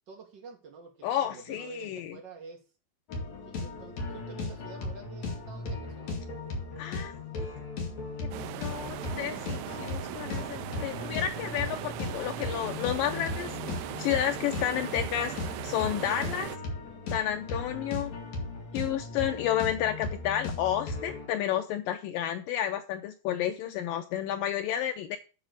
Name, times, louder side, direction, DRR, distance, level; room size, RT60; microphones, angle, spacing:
voice 1, 0.1-2.6 3.4-6.2, right 4 dB, 45° right, 1 dB, 1.5 m, -48 dB
voice 2, 1.0-2.2 6.8-7.1 8.6-13.5 14.0-15.3 15.6-16.5 17.1-18.1 18.7-25.2, left 11 dB, 85° left, 7 dB, 1.9 m, -31 dB
sound 1, 3.1-21.3, left 3 dB, 50° left, 2.7 m, -37 dB
sound 2, 8.3-16.6, right 15 dB, 85° right, 2.6 m, -39 dB
9.7 x 4.0 x 6.4 m, 0.34 s
omnidirectional pair, 4.6 m